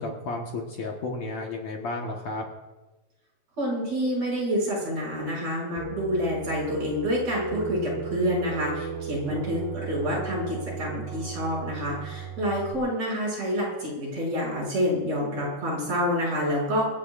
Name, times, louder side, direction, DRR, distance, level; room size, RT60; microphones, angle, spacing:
voice 1, 0.0-2.5, left 2 dB, 60° left, 0 dB, 2.5 m, -32 dB
voice 2, 3.6-16.8, equal, 45° right, -3 dB, 7.8 m, -28 dB
sound 1, 5.8-12.7, right 5 dB, 75° right, 2.8 m, -35 dB
24.0 x 17.0 x 2.6 m, 1.2 s
omnidirectional pair, 4.0 m